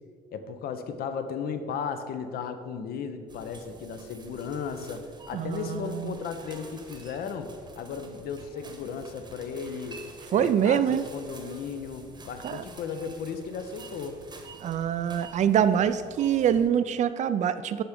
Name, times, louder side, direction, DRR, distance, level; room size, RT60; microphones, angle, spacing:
voice 1, 0.3-10.0 10.3-14.2, left 6 dB, 65° left, 8 dB, 0.7 m, -35 dB
sound 1, 3.3-16.7, right 3 dB, 25° right, 1.0 m, -49 dB
voice 2, 5.3-6.2 10.3-11.0 12.4-12.6 14.6-17.8, right 9 dB, 45° right, 13 dB, 0.4 m, -25 dB
10.0 x 3.5 x 5.2 m, 2.1 s
cardioid pair, 110°, 17 cm